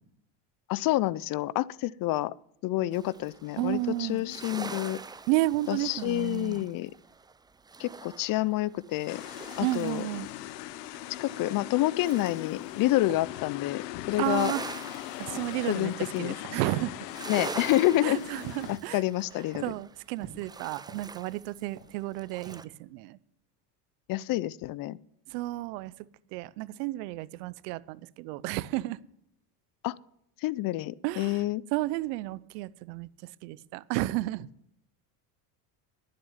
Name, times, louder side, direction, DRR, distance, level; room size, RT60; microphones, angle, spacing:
voice 1, 0.7-2.3 2.6-5.0 5.7-6.9 7.8-9.2 9.6-10.0 11.2-14.5 15.7-16.3 17.3-18.2 18.7-19.7 24.1-25.0 29.8-30.0 30.4-31.6, left 16 dB, 45° left, 23 dB, 0.5 m, -28 dB
sound 1, 2.9-10.2 10.5-13.2 13.6-22.6, right 4 dB, 10° right, 0.4 m, -44 dB
voice 2, 3.6-4.2 5.3-6.7 9.6-10.3 14.2-14.6 15.2-16.9 18.0-19.0 19.6-23.2 25.3-25.9 26.3-29.0 31.0-31.4 31.7-33.1 33.4-34.5, right 18 dB, 75° right, 20 dB, 0.8 m, -32 dB
sound 2, 9.1-18.8, left 16 dB, 85° left, 0.8 m, -40 dB
sound 3, 13.1-13.4 14.2-14.5 15.4-15.6 16.4-16.7 17.5-17.7 18.6-18.9 19.5-19.8 20.2-21.5 21.8-21.9 22.4-22.7, right 7 dB, 50° right, 2.8 m, -46 dB
11.0 x 7.7 x 9.6 m, 0.76 s
supercardioid pair, 100°, 48 cm